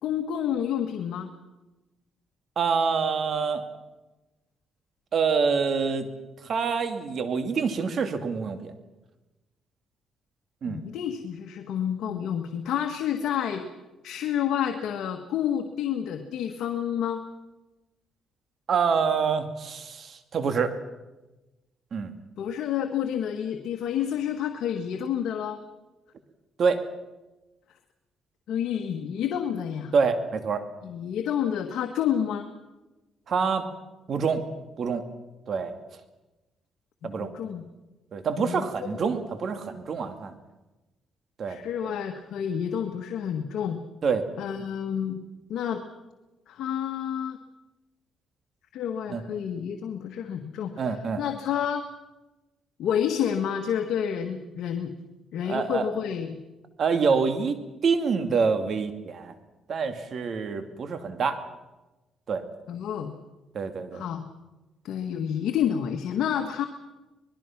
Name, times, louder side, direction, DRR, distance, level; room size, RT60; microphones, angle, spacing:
voice 1, 0.0-1.3 10.6-13.6 14.0-17.2 22.4-25.6 28.5-29.9 30.8-32.5 37.2-37.6 38.4-39.0 41.5-43.8 44.4-45.2 45.5-45.8 46.5-47.4 48.7-50.7 51.2-51.9 52.8-54.9 55.3-56.4 62.7-63.1 63.9-64.2 64.8-66.6, left 9 dB, 75° left, 4 dB, 1.5 m, -29 dB
voice 2, 2.6-3.6 5.1-6.1 6.4-8.7 10.6-10.8 18.7-20.8 21.9-22.1 26.6-26.8 29.9-30.6 33.3-33.7 34.1-34.4 34.8-35.0 35.5-35.7 37.0-37.3 38.1-40.3 41.4-41.6 44.0-44.2 49.1-49.2 50.8-51.2 55.4-55.9 56.8-57.6 57.8-59.3 59.7-61.4 62.3-62.4 63.5-64.0, right 5 dB, 55° right, 8 dB, 2.4 m, -26 dB
25.5 x 20.5 x 6.0 m, 1.1 s
cardioid pair, 90°, 0 cm